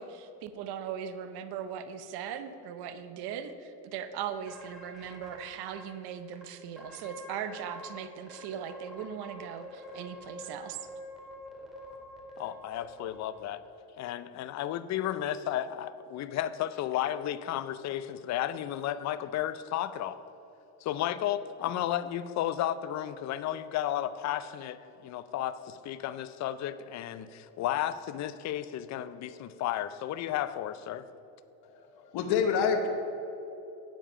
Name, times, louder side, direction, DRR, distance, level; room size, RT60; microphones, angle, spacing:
voice 1, 0.0-10.8, right 8 dB, 60° right, 10 dB, 0.8 m, -39 dB
sound 1, 4.5-5.8 6.3-6.4 6.8-8.0 8.3-13.5, left 1 dB, ahead, 2.1 m, -47 dB
voice 2, 12.4-13.6 14.0-20.2 20.8-31.0, left 12 dB, 40° left, 13 dB, 0.5 m, -33 dB
voice 3, 31.6-32.9, left 6 dB, 60° left, 4 dB, 1.2 m, -28 dB
8.9 x 7.2 x 5.5 m, 3.0 s
supercardioid pair, 95°, 44 cm